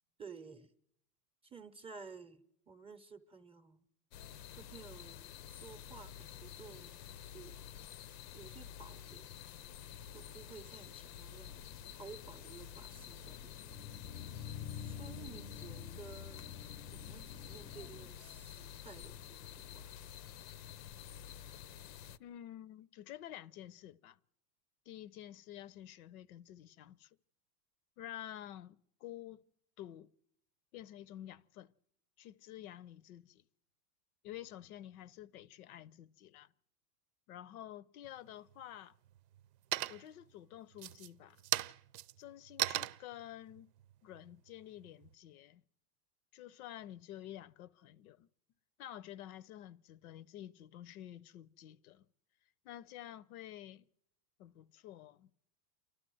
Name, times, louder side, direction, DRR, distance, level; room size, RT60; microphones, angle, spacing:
voice 1, 0.2-0.7 1.4-3.9 4.5-7.0 7.3-7.6 8.3-9.4 10.1-11.6 11.9-13.9 14.8-16.5 16.9-19.9, right 5 dB, 10° right, 0.7 m, -54 dB
sound 1, 4.1-22.2, left 9 dB, 85° left, 0.9 m, -50 dB
sound 2, 11.4-18.1, left 7 dB, 20° left, 0.7 m, -49 dB
voice 2, 22.2-24.2 24.9-27.2 28.0-29.4 29.8-30.1 30.7-31.7 32.2-33.4 34.2-36.5 37.3-38.9 39.9-41.4 42.2-43.7 44.0-45.6 46.3-48.3 48.8-52.1 52.6-53.8 54.4-55.3, left 12 dB, 65° left, 0.7 m, -50 dB
sound 3, 38.0-38.6 39.1-39.5 39.7-40.3 40.7-45.1, right 14 dB, 75° right, 0.8 m, -38 dB
29.0 x 12.0 x 7.7 m
supercardioid pair, 145°, 48 cm